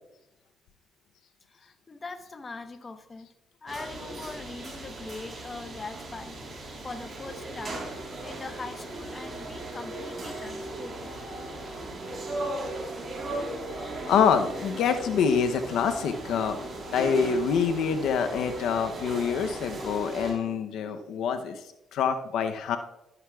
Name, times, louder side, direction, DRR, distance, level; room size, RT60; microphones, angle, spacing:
voice 1, 1.5-3.3 3.6-7.8 8.2-11.1 12.3-12.4, left 3 dB, 30° left, 8 dB, 1.0 m, -41 dB
sound 1, 3.7-20.3, right 2 dB, 35° right, 3.6 m, -37 dB
voice 2, 14.1-21.6 21.9-22.8, left 6 dB, 80° left, 7 dB, 0.6 m, -26 dB
12.5 x 10.5 x 2.3 m, 0.93 s
cardioid pair, 90°, 0 cm